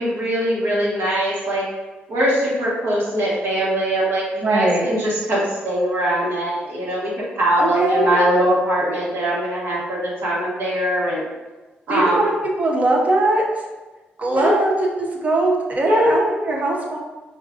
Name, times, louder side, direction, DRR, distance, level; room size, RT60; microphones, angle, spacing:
voice 1, 0.0-1.6 2.1-11.3 11.9-12.2 14.3-14.5 15.8-16.3, equal, 65° right, -6 dB, 1.2 m, -21 dB
voice 2, 4.4-4.9 7.6-8.2 11.9-13.6 14.2-14.7 15.0-17.0, right 2 dB, 40° right, 0 dB, 0.8 m, -20 dB
4.6 x 2.4 x 2.5 m, 1.2 s
cardioid pair, 85°, 4 cm